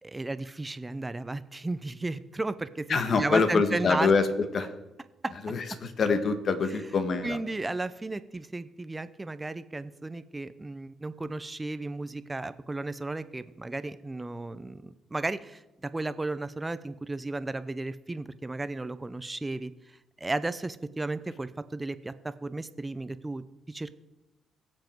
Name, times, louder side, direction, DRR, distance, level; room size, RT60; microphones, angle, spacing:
voice 1, 0.0-4.1 5.2-5.3 7.2-24.0, right 2 dB, 15° right, 14 dB, 0.8 m, -34 dB
voice 2, 2.9-4.7 5.4-7.4, left 4 dB, 50° left, 9 dB, 1.6 m, -25 dB
22.5 x 7.7 x 4.6 m, 1.0 s
cardioid pair, 90°, 0 cm